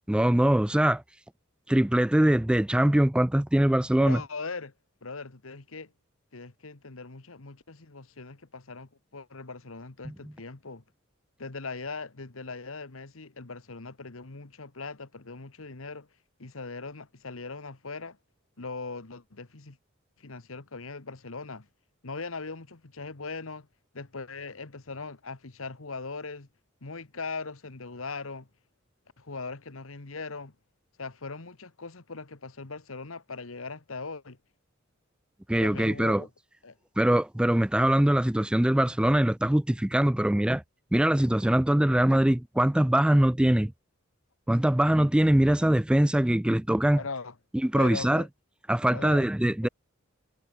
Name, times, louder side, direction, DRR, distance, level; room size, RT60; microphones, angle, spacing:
voice 1, 0.1-1.0 1.7-4.2 10.0-10.1 35.5-36.2 37.0-40.6 40.9-43.7 44.5-47.0 47.6-48.2 48.7-49.7, right 1 dB, 5° right, 0.3 m, -22 dB
voice 2, 4.0-4.7 5.0-5.9 6.3-10.8 11.4-16.1 16.4-18.2 18.6-19.8 20.2-21.7 22.0-23.7 23.9-26.5 26.8-28.5 29.2-30.5 31.0-34.4 35.6-36.3 36.6-36.8 46.9-47.3 47.7-48.3 48.8-49.3 49.6-49.7, left 4 dB, 85° left, 1.5 m, -40 dB
head